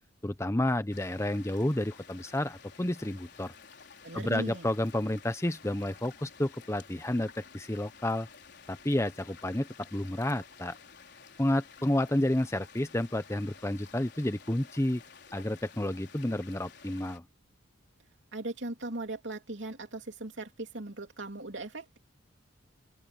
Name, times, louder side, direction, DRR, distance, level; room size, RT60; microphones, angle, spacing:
voice 1, 0.2-3.5 4.1-8.3 8.7-10.7 11.4-15.0 15.3-17.2, left 1 dB, 15° left, 0.9 m, -30 dB
sound 1, 0.9-17.2, left 6 dB, 55° left, 4.7 m, -53 dB
voice 2, 4.0-4.7 18.3-22.0, right 2 dB, 60° right, 3.4 m, -38 dB
open air
head